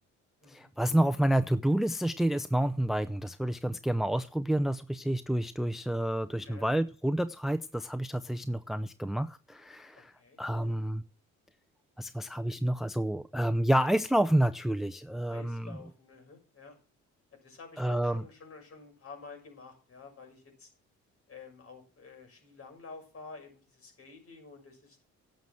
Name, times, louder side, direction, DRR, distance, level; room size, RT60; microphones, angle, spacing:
voice 1, 0.5-10.1 10.4-11.0 12.0-15.8 17.8-18.2, right 1 dB, ahead, 13 dB, 0.6 m, -29 dB
voice 2, 9.9-10.8 15.2-16.8 17.4-20.7 21.3-25.0, left 4 dB, 50° left, 3 dB, 6.7 m, -50 dB
11.5 x 7.8 x 7.5 m, 0.36 s
cardioid pair, 90°, 30 cm